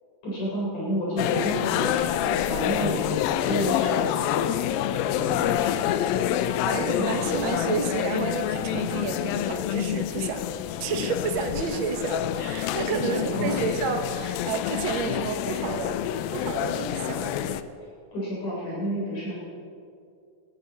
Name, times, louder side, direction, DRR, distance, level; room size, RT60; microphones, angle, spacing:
voice 1, 0.2-3.2 3.4-6.4 6.8-7.4 12.9-13.6 18.1-19.4, equal, 55° left, -7 dB, 4.8 m, -31 dB
sound 1, 1.2-17.6, left 11 dB, 85° left, 2.3 m, -27 dB
voice 2, 6.6-10.4 10.8-16.0 16.3-17.6, right 5 dB, 85° right, 4 dB, 1.1 m, -30 dB
19.0 x 13.0 x 4.1 m, 2.4 s
omnidirectional pair, 4.1 m